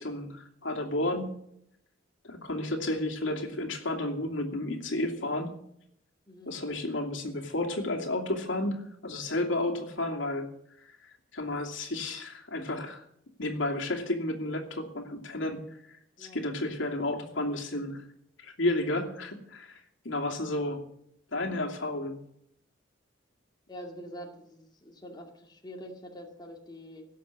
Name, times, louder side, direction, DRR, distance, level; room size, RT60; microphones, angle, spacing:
voice 1, 0.0-1.3 2.2-5.5 6.5-10.5 10.8-13.0 13.4-15.6 15.9-18.0 18.4-20.8 21.3-22.2, left 1 dB, 70° left, 2 dB, 2.7 m, -32 dB
voice 2, 6.3-6.6 16.2-16.4 23.7-27.1, equal, 20° left, 1 dB, 2.1 m, -45 dB
17.5 x 7.5 x 8.3 m, 0.71 s
head